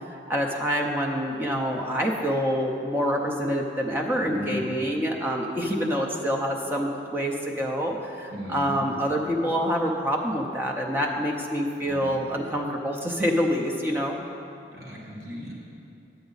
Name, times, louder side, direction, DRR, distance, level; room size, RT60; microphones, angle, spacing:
voice 1, 0.1-14.2, equal, 10° right, -1 dB, 0.6 m, -26 dB
voice 2, 4.2-4.6 8.3-8.8 11.8-12.1 14.8-15.5, equal, 55° right, -5 dB, 1.5 m, -36 dB
9.6 x 8.0 x 4.0 m, 2.7 s
head